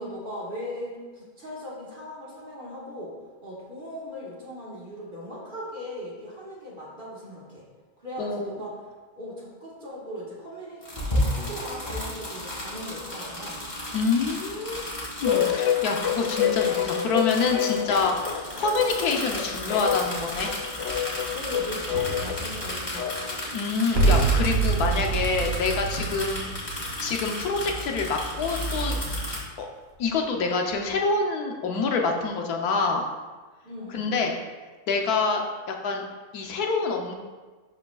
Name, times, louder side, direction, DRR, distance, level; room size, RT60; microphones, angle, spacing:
voice 1, 0.0-3.1 3.4-7.7 8.0-8.8 9.1-13.6 21.3-23.3 33.6-34.1, equal, 35° right, -6 dB, 1.7 m, -38 dB
voice 2, 8.2-8.6 13.9-14.8 15.2-18.1 18.6-20.5 23.5-26.5 27.0-29.0 29.6-29.7 30.0-33.0 33.9-34.4 34.9-36.0 36.3-37.1, left 4 dB, 85° left, 2 dB, 1.3 m, -26 dB
sound 1, 10.8-29.4, left 1 dB, 30° left, 2.3 m, -33 dB
sound 2, 15.2-23.5, left 10 dB, 65° left, 0.7 m, -28 dB
sound 3, 21.9-23.2 23.9-27.3 28.4-28.7, right 4 dB, 65° right, 1.5 m, -26 dB
11.5 x 5.0 x 2.4 m, 1.3 s
omnidirectional pair, 1.6 m